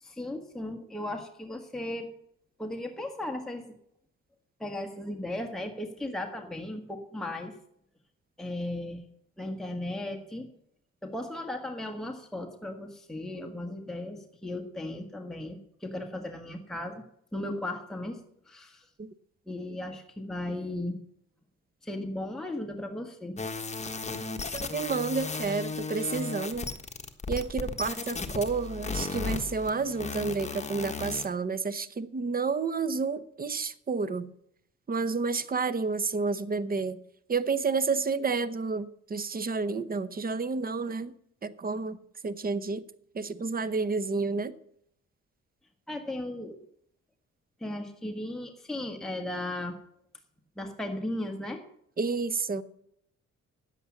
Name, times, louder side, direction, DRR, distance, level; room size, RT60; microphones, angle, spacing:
voice 1, 0.0-2.1 2.6-3.7 4.6-7.5 8.4-9.1 9.4-10.5 11.0-17.0 17.3-18.2 18.5-18.9 19.5-21.0 21.8-23.4 45.9-46.6 47.6-49.8 50.6-51.6, left 1 dB, ahead, 3 dB, 1.4 m, -36 dB
sound 1, 23.4-31.3, left 4 dB, 25° left, 1.4 m, -35 dB
voice 2, 24.5-26.7 27.3-34.3 34.9-37.0 37.3-41.1 41.4-42.0 42.2-42.8 43.1-44.5 52.0-52.6, right 4 dB, 30° right, 14 dB, 0.8 m, -30 dB
10.0 x 8.0 x 7.1 m, 0.70 s
cardioid pair, 90°, 30 cm